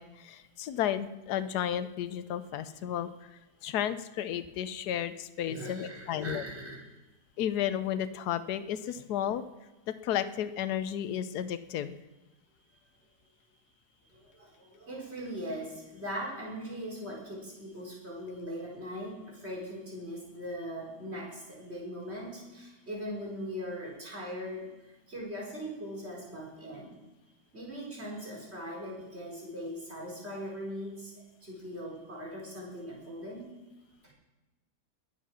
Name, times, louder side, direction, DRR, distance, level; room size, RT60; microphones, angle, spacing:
voice 1, 0.0-6.4 7.4-9.4 9.9-12.0, left 10 dB, 70° left, 12 dB, 1.3 m, -33 dB
voice 2, 5.5-6.8 14.1-24.7 25.1-26.9 27.5-31.1 31.4-33.5, equal, 35° right, -3 dB, 4.7 m, -40 dB
21.5 x 7.5 x 6.2 m, 1.1 s
omnidirectional pair, 1.8 m